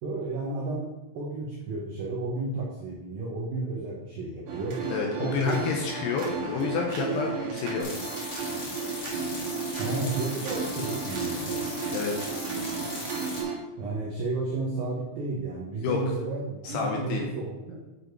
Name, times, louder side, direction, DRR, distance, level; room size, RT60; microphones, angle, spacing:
voice 1, 0.0-0.9 1.1-4.8 5.2-5.6 9.8-11.7 13.8-17.8, right 3 dB, 85° right, -2 dB, 2.0 m, -32 dB
sound 1, 4.5-13.6, right 4 dB, 60° right, 2.4 m, -33 dB
voice 2, 4.9-7.9 11.9-12.3 15.8-16.0 16.6-17.2, left 5 dB, 85° left, 1 dB, 2.3 m, -29 dB
sound 2, 7.8-13.4, left 2 dB, 55° left, 1.8 m, -38 dB
10.5 x 5.1 x 4.6 m, 1.1 s
omnidirectional pair, 5.9 m